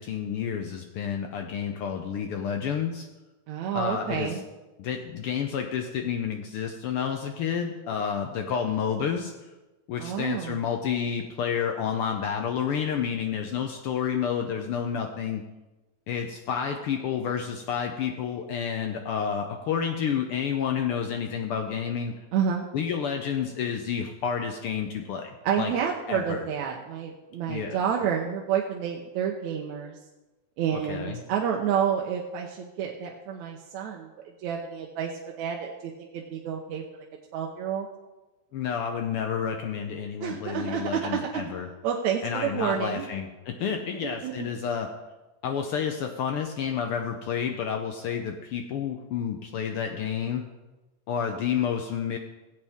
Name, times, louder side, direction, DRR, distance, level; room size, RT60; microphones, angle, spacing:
voice 1, 0.0-3.1 3.7-4.4 4.8-9.5 9.9-15.4 16.1-22.1 22.7-25.7 26.1-26.4 27.5-27.8 30.7-31.2 38.5-41.7 42.2-44.9 45.4-50.4 51.1-52.2, left 7 dB, 80° left, 4 dB, 1.2 m, -30 dB
voice 2, 3.5-4.4 10.0-10.6 22.3-22.7 25.4-30.0 30.6-34.1 34.4-35.1 35.4-36.8 37.3-37.9 40.2-41.4 41.8-43.0 43.6-43.7 44.0-44.5, right 8 dB, 80° right, 0 dB, 2.2 m, -29 dB
16.5 x 8.2 x 3.5 m, 1.1 s
omnidirectional pair, 3.3 m